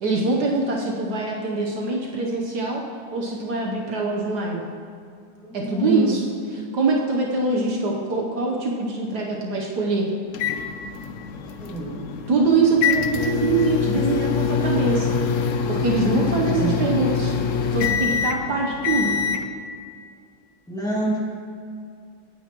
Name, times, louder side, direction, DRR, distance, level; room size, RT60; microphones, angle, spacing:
voice 1, 0.0-2.8 3.1-4.6 5.5-6.2 6.5-10.1 12.3-15.1 15.7-17.3 17.7-19.1, right 3 dB, 65° right, -1 dB, 1.5 m, -23 dB
voice 2, 5.4-6.2 11.6-12.1 16.0-16.7 20.7-21.2, right 1 dB, ahead, -6 dB, 2.1 m, -27 dB
sound 1, 10.3-19.4, left 6 dB, 65° left, 0.8 m, -25 dB
17.0 x 9.3 x 3.0 m, 2.3 s
omnidirectional pair, 2.0 m